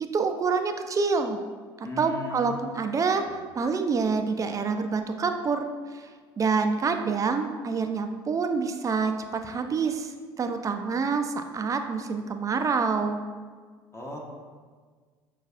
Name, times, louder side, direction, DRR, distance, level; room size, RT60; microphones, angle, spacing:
voice 1, 0.1-1.4 1.8-3.2 3.5-6.1 6.4-10.1 10.4-13.2, right 5 dB, 25° right, 7 dB, 0.4 m, -27 dB
voice 2, 1.8-2.6 3.2-3.3 13.9-14.2, left 2 dB, 20° left, -1 dB, 0.9 m, -37 dB
5.9 x 2.3 x 2.4 m, 1.6 s
hypercardioid pair, 60°, 13 cm